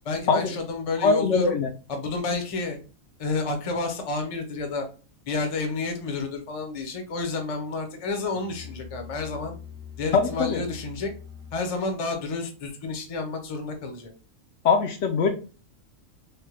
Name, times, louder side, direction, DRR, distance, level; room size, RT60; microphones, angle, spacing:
voice 1, 0.0-1.6 1.9-2.8 3.2-4.9 5.3-9.5 10.0-11.1 11.5-14.1, left 3 dB, 35° left, 5 dB, 0.6 m, -30 dB
voice 2, 1.0-1.7 10.1-10.6 14.6-15.3, left 5 dB, 70° left, 5 dB, 0.8 m, -22 dB
Musical instrument, 8.3-11.8, left 7 dB, 70° right, 1.0 m, -43 dB
3.3 x 2.1 x 2.9 m, 0.34 s
omnidirectional pair, 1.4 m